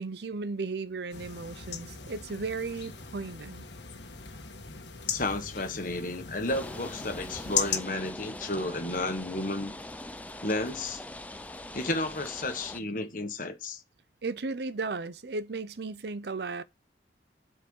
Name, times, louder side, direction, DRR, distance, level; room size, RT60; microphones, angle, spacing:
voice 1, 0.0-3.6 14.2-16.6, right 3 dB, 65° right, 0.6 m, -35 dB
sound 1, 1.1-7.8, left 7 dB, 80° left, 1.5 m, -37 dB
voice 2, 5.1-9.7 10.4-11.0 11.7-13.8, left 2 dB, 45° left, 1.4 m, -32 dB
sound 2, 6.5-12.8, left 1 dB, 10° left, 0.5 m, -42 dB
8.5 x 4.6 x 6.4 m
head